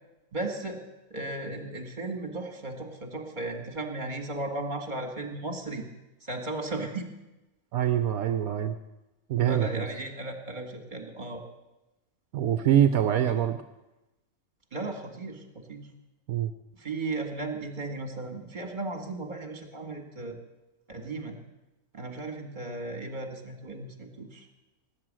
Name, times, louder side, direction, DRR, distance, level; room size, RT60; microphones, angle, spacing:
voice 1, 0.3-0.8 1.1-5.9 6.2-7.1 9.5-11.4 14.7-15.9 16.8-20.4 20.9-21.4 21.9-24.5, right 2 dB, 30° right, 3 dB, 2.1 m, -35 dB
voice 2, 7.7-8.8 9.3-9.8 12.3-13.6 16.3-16.5, right 10 dB, 75° right, 9 dB, 1.2 m, -24 dB
19.0 x 9.8 x 7.6 m, 1.0 s
omnidirectional pair, 1.5 m